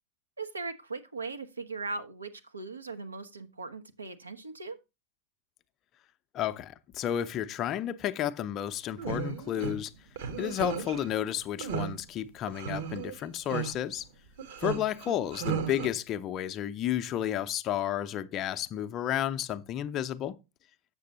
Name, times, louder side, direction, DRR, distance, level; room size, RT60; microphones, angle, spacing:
voice 1, 0.4-4.8, right 3 dB, 80° right, 0.8 m, -39 dB
voice 2, 6.3-9.9 10.4-14.1 14.6-20.4, left 11 dB, 35° left, 0.6 m, -32 dB
sound 1, 9.0-9.8 10.2-11.0 11.6-11.9 12.5-13.1 13.5-13.7 14.4-15.9, right 7 dB, 55° right, 1.2 m, -34 dB
7.6 x 6.6 x 3.9 m
figure-of-eight pair, 95°, 0 cm